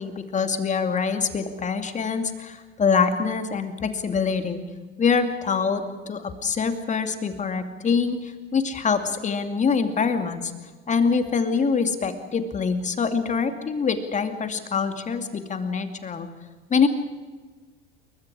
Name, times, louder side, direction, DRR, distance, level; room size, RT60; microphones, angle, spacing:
voice 1, 0.0-4.6 5.0-10.5 10.9-16.3 16.7-16.9, left 5 dB, 20° left, 8 dB, 2.5 m, -24 dB
28.5 x 23.0 x 5.0 m, 1.4 s
figure-of-eight pair, 80°, 33 cm